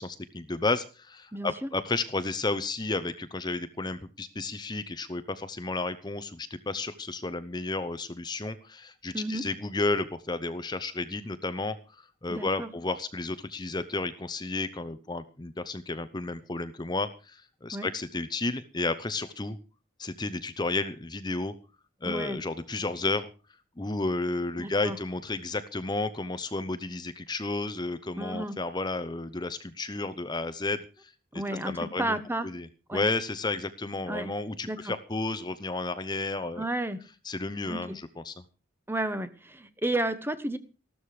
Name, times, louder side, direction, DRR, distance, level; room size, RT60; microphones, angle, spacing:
voice 1, 0.0-19.6 20.0-21.5 22.0-23.3 23.8-36.7 37.2-38.3, left 3 dB, 20° left, 11 dB, 0.8 m, -32 dB
voice 2, 1.3-1.7 9.1-9.4 12.3-12.7 17.7-17.9 22.0-22.4 24.6-25.0 28.2-28.6 31.3-32.5 32.9-33.0 34.1-34.3 34.7-34.9 36.6-37.0 37.7-38.0 38.9-40.6, right 1 dB, 10° right, 12 dB, 1.0 m, -32 dB
14.5 x 13.0 x 4.9 m, 0.33 s
head